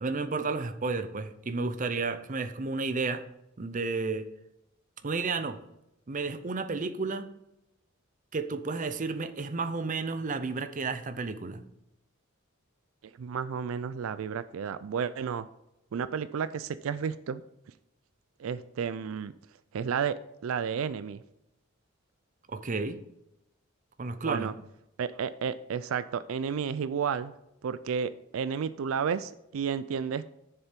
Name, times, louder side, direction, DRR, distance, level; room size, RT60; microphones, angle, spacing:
voice 1, 0.0-3.2 3.6-4.3 5.0-5.6 6.1-7.3 8.3-11.6 22.5-23.0 24.0-24.5, right 4 dB, 40° right, 10 dB, 0.6 m, -32 dB
voice 2, 13.2-15.5 15.9-17.4 18.4-19.3 19.7-20.1 20.4-21.2 24.2-24.5 25.0-27.3 27.6-30.2, right 7 dB, 80° right, 14 dB, 0.4 m, -32 dB
7.2 x 6.9 x 5.1 m, 0.86 s
head